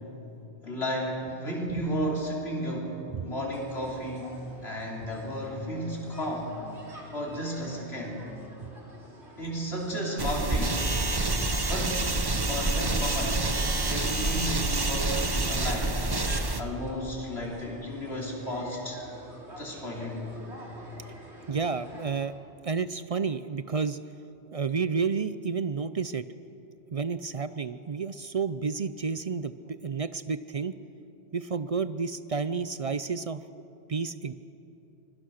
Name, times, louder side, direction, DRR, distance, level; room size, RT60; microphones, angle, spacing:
voice 1, 0.6-3.0 3.2-4.3 4.6-6.6 7.1-8.3 9.4-10.8 11.7-12.0 12.5-13.4 13.9-16.0 16.6-19.0 19.6-20.3, equal, 70° left, -2 dB, 4.0 m, -33 dB
sound 1, 3.5-22.3, right 1 dB, 80° right, 3.5 m, -49 dB
sound 2, 10.2-16.6, right 2 dB, 25° right, 1.0 m, -27 dB
voice 2, 21.5-22.3 22.6-24.0 24.5-26.3 26.9-30.8 31.3-33.4 33.9-34.3, right 5 dB, 45° right, 13 dB, 0.5 m, -30 dB
25.5 x 21.5 x 6.5 m, 3.0 s
omnidirectional pair, 1.1 m